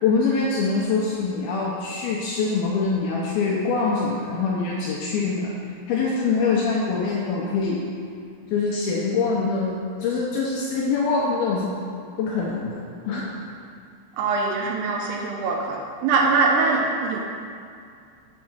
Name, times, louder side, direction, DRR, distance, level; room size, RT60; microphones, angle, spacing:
voice 1, 0.0-5.5 5.9-7.8 8.5-9.7 10.0-11.7 12.2-12.8 13.0-13.3, left 4 dB, 80° left, -4 dB, 2.3 m, -24 dB
voice 2, 14.2-17.2, right 4 dB, 80° right, 0 dB, 2.5 m, -22 dB
7.3 x 5.3 x 6.2 m, 2.3 s
omnidirectional pair, 5.1 m